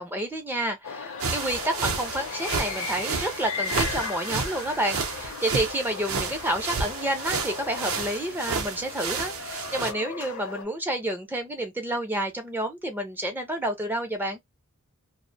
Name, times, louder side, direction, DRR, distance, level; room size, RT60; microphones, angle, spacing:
voice 1, 0.0-14.4, right 1 dB, 10° right, 0.4 m, -29 dB
sound 1, 0.8-10.6, left 6 dB, 60° left, 0.5 m, -37 dB
sound 2, 1.2-9.9, right 5 dB, 65° right, 0.5 m, -31 dB
2.4 x 2.0 x 2.6 m
head